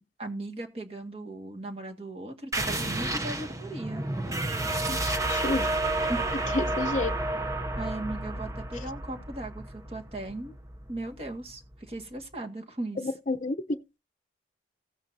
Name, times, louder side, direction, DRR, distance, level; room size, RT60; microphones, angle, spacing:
voice 1, 0.0-4.1 6.1-6.3 7.8-10.6 10.9-13.1, right 2 dB, 30° right, 1.9 m, -37 dB
sound 1, 2.5-11.7, right 2 dB, 15° right, 0.7 m, -31 dB
voice 2, 4.9-5.7 6.5-7.1 13.0-13.6, left 3 dB, 40° left, 0.7 m, -30 dB
15.5 x 8.8 x 2.7 m
head